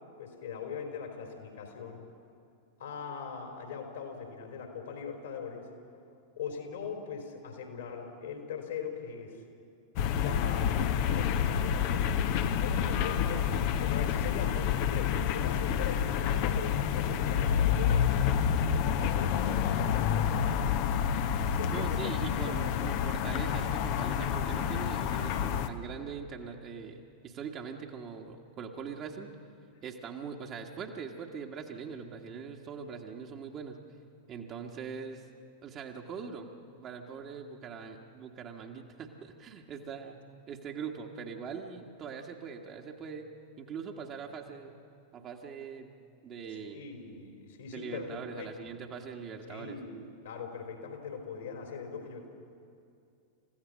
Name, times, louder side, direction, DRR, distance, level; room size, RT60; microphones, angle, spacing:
voice 1, 0.2-2.0 2.8-5.7 6.4-9.4 10.1-18.2 18.7-20.8 21.4-23.2 46.5-48.7 49.5-52.3, left 6 dB, 60° left, 3 dB, 3.6 m, -41 dB
sound 1, 10.0-25.7, left 8 dB, 45° left, 1.0 m, -28 dB
voice 2, 21.7-29.3 29.8-33.8 34.3-35.2 35.6-36.5 36.8-40.2 40.5-43.3 43.6-44.7 45.1-45.9 46.2-46.8 47.7-49.8, right 6 dB, 30° right, 1 dB, 1.6 m, -42 dB
28.5 x 15.5 x 6.4 m, 2.5 s
figure-of-eight pair, 90°, 0 cm